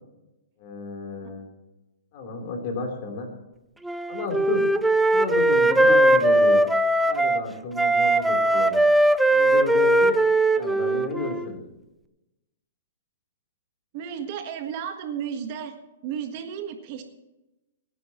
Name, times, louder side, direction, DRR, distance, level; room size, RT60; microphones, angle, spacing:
voice 1, 0.6-1.5 2.1-3.3 4.1-4.6 5.1-6.6 7.0-8.8 9.3-10.1 10.5-11.6, left 3 dB, 40° left, 2 dB, 3.8 m, -31 dB
Wind instrument woodwind instrument, 3.8-7.4 7.8-11.5, right 1 dB, 5° right, 0.4 m, -20 dB
voice 2, 13.9-15.7 16.0-17.0, right 8 dB, 40° right, 6 dB, 1.5 m, -33 dB
26.0 x 10.0 x 3.1 m, 0.98 s
hypercardioid pair, 155°, 0 cm